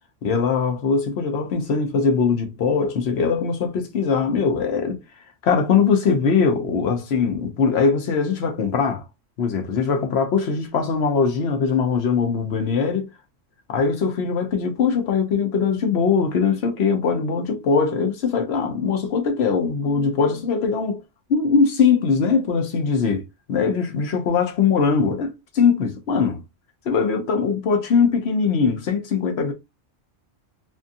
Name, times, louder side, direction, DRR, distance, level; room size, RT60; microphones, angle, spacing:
voice 1, 0.2-5.0 5.4-9.0 9.4-13.1 13.7-21.0 21.3-23.2 23.5-26.4 26.9-29.5, left 5 dB, 65° left, 1.0 m, -21 dB
2.7 x 2.4 x 2.5 m
omnidirectional pair, 1.2 m